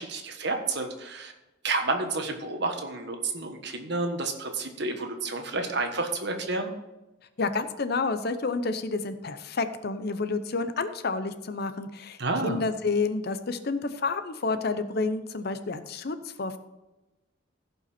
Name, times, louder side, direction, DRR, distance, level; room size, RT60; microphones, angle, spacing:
voice 1, 0.0-1.3 1.6-6.7 12.2-12.6, right 3 dB, 55° right, 5 dB, 1.4 m, -30 dB
voice 2, 7.4-12.2 12.4-16.6, left 3 dB, 50° left, 11 dB, 0.7 m, -29 dB
16.0 x 5.5 x 4.3 m, 1.0 s
head